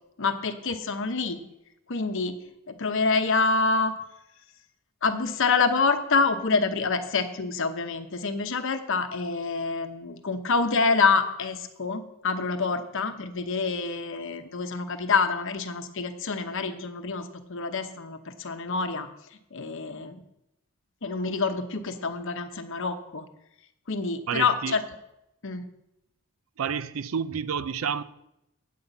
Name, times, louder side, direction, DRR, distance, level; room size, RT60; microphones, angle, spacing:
voice 1, 0.2-1.4 1.9-2.4 2.7-3.9 5.0-19.1 19.5-20.2 21.0-23.2 23.9-24.8 25.4-25.6, left 4 dB, 60° left, 0.9 m, -27 dB
voice 2, 24.3-24.8 26.6-28.0, right 7 dB, 65° right, 0.4 m, -29 dB
8.5 x 5.6 x 8.0 m
head